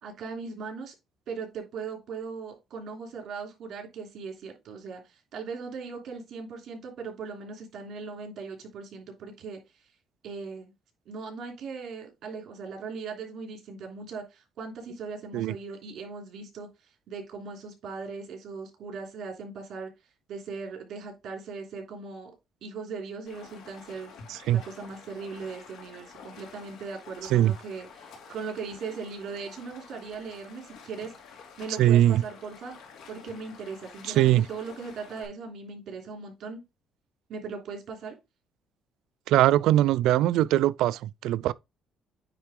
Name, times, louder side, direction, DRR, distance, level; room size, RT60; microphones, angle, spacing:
voice 1, 0.0-0.9 1.3-9.6 10.2-10.7 11.1-16.7 17.1-19.9 20.3-22.3 22.6-24.1 24.5-31.1 31.6-32.7 33.1-36.6 37.3-38.2, right 5 dB, 60° right, 3.1 m, -39 dB
Stream, 23.3-35.3, left 5 dB, 75° left, 2.7 m, -49 dB
voice 2, 24.3-24.6 27.3-27.5 31.8-32.2 34.1-34.4 39.3-41.5, right 13 dB, 80° right, 0.3 m, -21 dB
9.2 x 3.8 x 3.7 m
cardioid pair, 120°, 0 cm